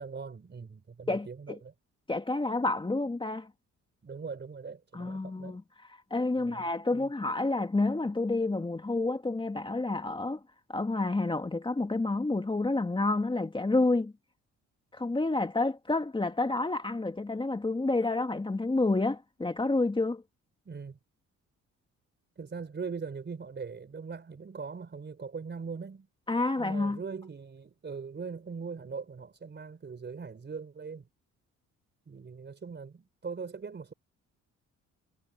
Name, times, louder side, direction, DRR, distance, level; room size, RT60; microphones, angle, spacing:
voice 1, 0.0-1.7 4.0-5.6 6.3-7.1 20.6-21.0 22.4-26.1 26.6-31.1 32.1-33.9, right 5 dB, 35° right, 4.1 m, -41 dB
voice 2, 1.1-1.6 2.1-3.5 4.9-5.6 6.1-10.4 10.7-14.1 14.9-20.2 26.3-27.0, left 2 dB, 15° left, 2.1 m, -29 dB
cardioid pair, 90°, 30 cm